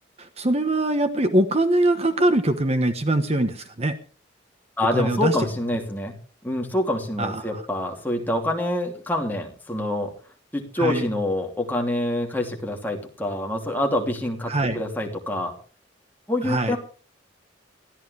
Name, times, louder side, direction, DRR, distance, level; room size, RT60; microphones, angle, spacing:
voice 1, 0.2-4.0 4.9-5.5 7.2-7.6 10.8-11.1 14.5-14.8 16.4-16.8, right 1 dB, 35° right, 9 dB, 1.1 m, -23 dB
voice 2, 4.8-6.1 6.4-10.1 10.5-15.5 16.3-16.8, left 1 dB, 10° left, 1 dB, 3.0 m, -26 dB
21.5 x 14.5 x 3.4 m, 0.39 s
head